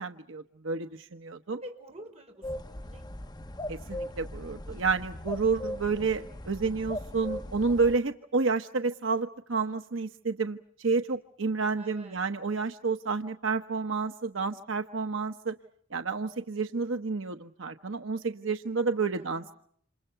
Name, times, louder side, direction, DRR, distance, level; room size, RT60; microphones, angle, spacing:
voice 1, 0.0-1.6 3.7-15.5 15.9-19.5, right 4 dB, 85° right, 7 dB, 1.0 m, -30 dB
voice 2, 1.6-3.1 3.4-3.7 11.7-12.3 18.9-19.5, equal, 35° right, 4 dB, 5.1 m, -49 dB
sound 1, 2.4-8.0, left 1 dB, 20° left, 1.0 m, -39 dB
28.5 x 28.0 x 5.8 m, 0.64 s
head